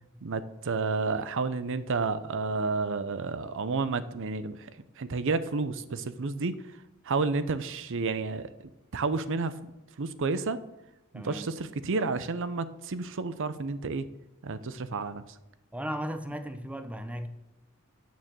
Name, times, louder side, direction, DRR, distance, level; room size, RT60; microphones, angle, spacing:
voice 1, 0.2-4.7 5.0-6.6 7.1-8.5 8.9-9.5 10.0-10.6 11.1-14.1 14.4-15.2, right 4 dB, 60° right, 0.6 m, -30 dB
voice 2, 11.1-11.5 15.7-17.3, equal, 5° right, 0.7 m, -36 dB
9.3 x 6.7 x 7.4 m
head